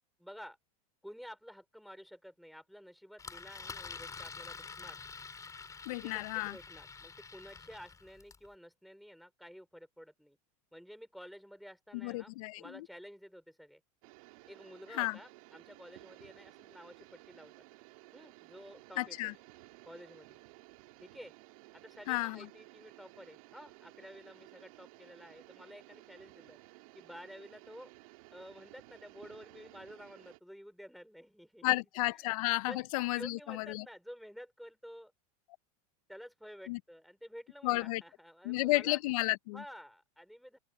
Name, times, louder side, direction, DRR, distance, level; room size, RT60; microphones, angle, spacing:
voice 1, 0.2-0.6 1.0-5.0 6.0-10.4 10.7-13.8 14.5-17.5 18.1-19.3 19.8-20.4 21.0-21.3 21.7-26.6 26.9-31.8 32.2-32.3 32.7-35.1 36.1-39.0 39.5-40.6, equal, ahead, 4.7 m, -51 dB
Engine, 3.2-8.5, left 5 dB, 15° left, 4.7 m, -47 dB
voice 2, 5.9-6.6 11.9-12.9 15.0-15.1 19.0-19.3 22.1-22.5 31.6-33.8 36.7-36.8 37.6-38.0 38.4-39.6, left 20 dB, 70° left, 0.7 m, -32 dB
sound 1, 14.0-30.4, right 23 dB, 70° right, 2.7 m, -56 dB
open air
supercardioid pair, 120°, 19 cm